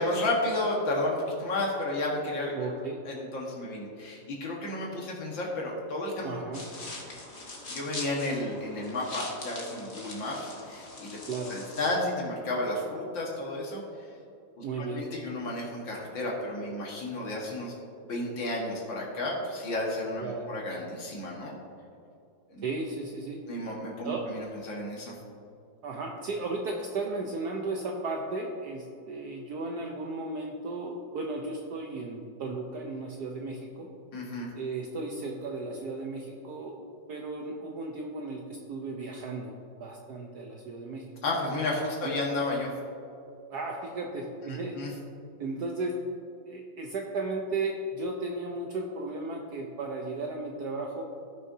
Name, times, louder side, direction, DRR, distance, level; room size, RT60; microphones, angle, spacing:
voice 1, 0.0-2.7 3.1-6.4 7.7-11.2 11.5-13.8 14.6-17.7 18.0-21.6 22.5-22.6 23.5-25.2 34.1-34.5 41.2-42.7 44.5-44.9, left 1 dB, 75° left, -3 dB, 2.3 m, -32 dB
voice 2, 2.5-3.0 6.2-6.6 11.3-11.6 14.6-15.1 20.2-20.6 22.6-23.4 24.0-24.3 25.8-33.9 34.5-39.5 39.8-41.0 42.0-42.2 43.5-44.8 45.4-46.0 46.5-51.0, right 3 dB, 65° right, 0 dB, 1.2 m, -35 dB
sound 1, 6.5-11.9, left 2 dB, 40° left, 1.4 m, -42 dB
16.5 x 6.3 x 2.7 m, 2.6 s
omnidirectional pair, 2.0 m